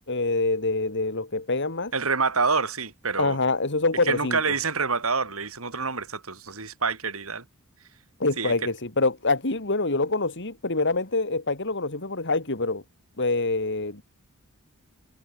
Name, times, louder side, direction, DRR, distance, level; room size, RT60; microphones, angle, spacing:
voice 1, 0.1-1.9 3.2-4.4 8.2-12.8 13.2-14.0, left 3 dB, 55° left, 3.1 m, -25 dB
voice 2, 1.9-3.4 4.0-7.4 8.4-8.5, right 4 dB, 70° right, 5.6 m, -27 dB
head